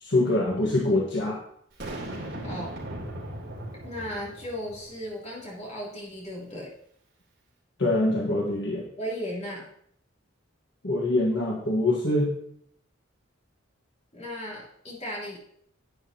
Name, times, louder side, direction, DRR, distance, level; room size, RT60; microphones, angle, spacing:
voice 1, 0.0-1.4 7.8-8.8 10.8-12.3, left 2 dB, 65° left, -2 dB, 1.5 m, -24 dB
Boom, 1.8-5.1, right 1 dB, 60° right, 3.2 m, -38 dB
voice 2, 2.4-2.8 3.8-6.7 9.0-9.7 14.1-15.4, equal, 35° left, -5 dB, 3.2 m, -36 dB
10.5 x 9.0 x 2.9 m, 0.68 s
head